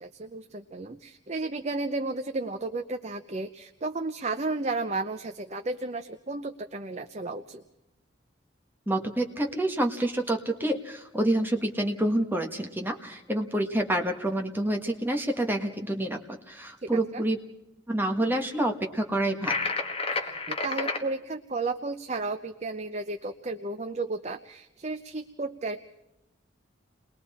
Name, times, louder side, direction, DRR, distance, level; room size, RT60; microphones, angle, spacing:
voice 1, 0.0-7.6 16.8-17.2 20.1-25.8, right 3 dB, 35° right, 7 dB, 0.7 m, -33 dB
voice 2, 8.9-17.4 17.9-19.5, right 1 dB, 10° right, 3 dB, 1.5 m, -28 dB
sound 1, 19.4-21.0, left 3 dB, 30° left, 1.5 m, -30 dB
29.5 x 21.0 x 4.3 m, 0.90 s
head